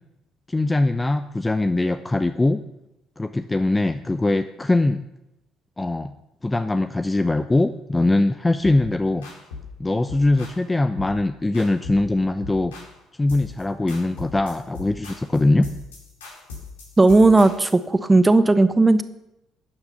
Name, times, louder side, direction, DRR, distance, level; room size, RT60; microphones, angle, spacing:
voice 1, 0.5-2.6 3.2-5.0 5.8-6.1 6.4-9.3 9.8-12.7 13.2-15.7, left 2 dB, 15° left, 10 dB, 0.7 m, -21 dB
sound 1, 8.6-8.9 9.2-9.7 10.1-10.6 11.0-11.2 11.5-12.1 12.4-13.0 13.3-13.6 13.9-17.8, left 4 dB, 80° left, 3.7 m, -39 dB
voice 2, 17.0-19.0, right 2 dB, 20° right, 12 dB, 1.1 m, -15 dB
13.0 x 9.5 x 5.7 m, 0.89 s
figure-of-eight pair, 50°, 0 cm